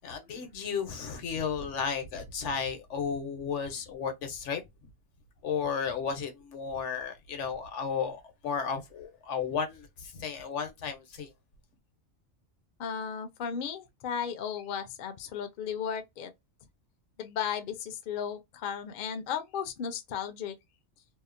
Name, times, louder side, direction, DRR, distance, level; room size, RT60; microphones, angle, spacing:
voice 1, 0.0-4.6 5.4-11.3, left 6 dB, 80° left, 1.0 m, -33 dB
voice 2, 12.8-16.3 17.2-20.5, left 7 dB, 60° left, 0.6 m, -35 dB
2.8 x 2.0 x 2.4 m
omnidirectional pair, 1.2 m